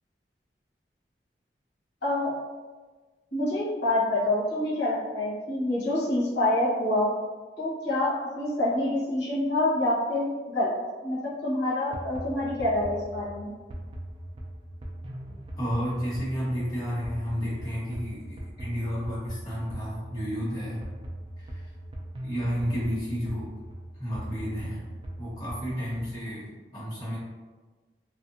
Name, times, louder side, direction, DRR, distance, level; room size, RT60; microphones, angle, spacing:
voice 1, 2.0-2.3 3.3-7.1 7.6-10.8 11.0-13.5, left 1 dB, 85° left, -8 dB, 1.0 m, -27 dB
sound 1, 11.9-26.2, right 1 dB, 30° right, 0.3 m, -40 dB
voice 2, 15.6-20.8 21.4-21.7 22.2-23.5 24.0-24.8 25.2-27.2, equal, 20° left, -11 dB, 1.1 m, -31 dB
2.6 x 2.4 x 2.5 m, 1.3 s
head